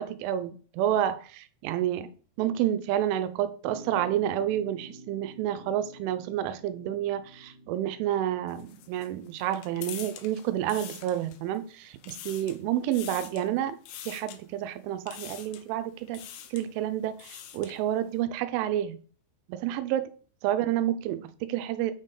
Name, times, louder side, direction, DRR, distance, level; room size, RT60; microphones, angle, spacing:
voice 1, 0.0-2.1 2.4-13.8 14.0-16.2 16.5-19.0 19.5-20.1 20.4-21.9, right 11 dB, 85° right, 3.1 m, -29 dB
sound 1, 3.6-10.0, right 2 dB, 55° right, 2.1 m, -50 dB
sound 2, 8.5-11.6 11.9-12.6 12.9-13.5 13.9-14.4 15.1-15.7 16.1-16.7 17.0-17.8, left 10 dB, 80° left, 3.2 m, -44 dB
9.0 x 4.4 x 4.9 m
omnidirectional pair, 5.5 m